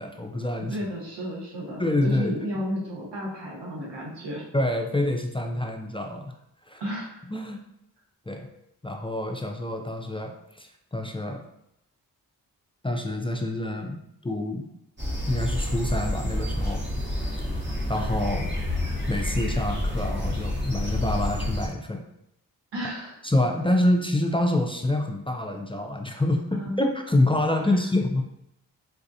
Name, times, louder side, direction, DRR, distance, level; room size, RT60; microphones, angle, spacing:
voice 1, 0.0-0.8 1.8-2.4 4.5-6.3 6.7-6.8 7.3-7.6 8.3-8.5 8.8-11.4 12.8-14.7 15.3-16.8 17.9-18.5 19.1-22.0 23.2-28.2, left 1 dB, 15° left, 2 dB, 0.4 m, -26 dB
voice 2, 0.7-4.4 6.8-7.2 22.7-23.2 26.5-26.8 27.6-27.7, equal, 80° right, -5 dB, 1.3 m, -32 dB
sound 1, 15.0-21.7, left 1 dB, 25° right, 1.0 m, -29 dB
4.0 x 2.4 x 2.7 m, 0.80 s
cardioid pair, 45°, 42 cm